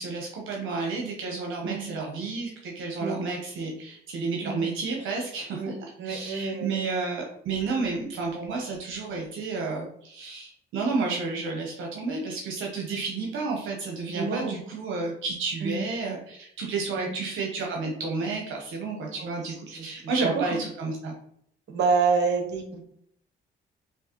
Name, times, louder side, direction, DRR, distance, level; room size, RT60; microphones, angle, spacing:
voice 1, 0.0-5.7 6.0-21.1, right 4 dB, 80° right, 0 dB, 0.9 m, -31 dB
voice 2, 6.0-6.8 14.1-14.6 15.6-15.8 16.9-17.1 19.2-20.6 21.7-22.8, right 4 dB, 60° right, 3 dB, 1.1 m, -28 dB
4.5 x 2.9 x 2.9 m, 0.68 s
cardioid pair, 90°, 20 cm